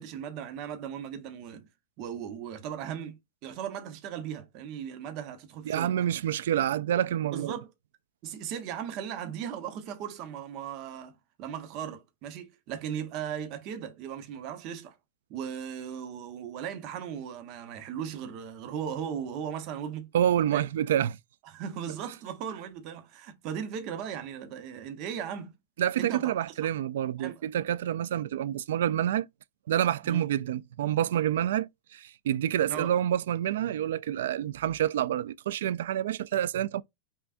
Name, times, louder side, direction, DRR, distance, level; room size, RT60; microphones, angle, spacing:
voice 1, 0.0-1.7 2.0-6.0 7.3-7.7 8.2-15.0 15.3-20.1 20.5-20.7 21.4-25.5 26.0-26.3 26.6-26.7 27.2-27.4 30.0-30.2 32.7-32.9, right 8 dB, 35° right, 0.9 m, -37 dB
voice 2, 5.7-7.5 20.1-21.2 25.8-29.3 29.7-36.8, right 11 dB, 75° right, 0.3 m, -28 dB
5.6 x 2.3 x 2.5 m
supercardioid pair, 165°, 0 cm